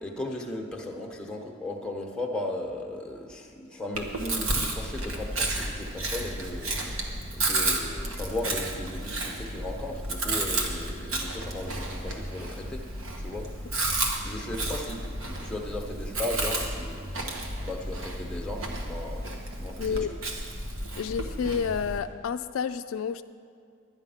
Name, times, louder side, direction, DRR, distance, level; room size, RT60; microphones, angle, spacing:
voice 1, 0.0-12.9 13.2-13.8 14.2-19.3 19.6-20.2, left 1 dB, 5° left, 0 dB, 1.1 m, -36 dB
Chewing mastication, 3.9-22.0, right 2 dB, 75° right, 1.4 m, -32 dB
voice 2, 19.8-20.1 21.0-23.2, left 6 dB, 70° left, 10 dB, 0.3 m, -30 dB
11.5 x 10.0 x 5.7 m, 2.2 s
head